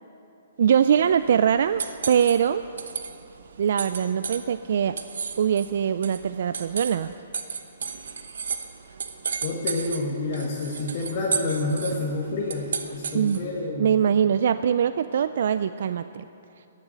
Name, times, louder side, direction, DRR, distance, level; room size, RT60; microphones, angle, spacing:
voice 1, 0.6-1.8 2.1-2.6 3.6-5.0 5.4-7.1 13.1-13.4 13.8-16.3, right 8 dB, 60° right, 12 dB, 0.3 m, -22 dB
sound 1, 0.7-13.6, right 6 dB, 75° right, 0.9 m, -35 dB
voice 2, 9.4-13.9, left 2 dB, 40° left, -3 dB, 1.7 m, -28 dB
14.5 x 7.3 x 9.0 m, 2.7 s
hypercardioid pair, 160°, 0 cm